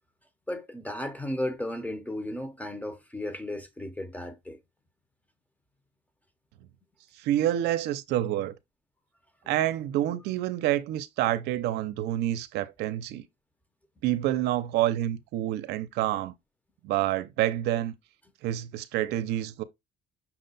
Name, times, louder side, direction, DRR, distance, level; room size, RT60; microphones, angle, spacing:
voice 1, 0.5-4.6, left 1 dB, 10° left, 0.7 m, -34 dB
voice 2, 7.2-8.5 9.5-13.3 14.0-16.3 16.8-17.9 18.4-19.6, right 13 dB, 85° right, 0.5 m, -28 dB
5.8 x 2.2 x 3.9 m
cardioid pair, 110°, 17 cm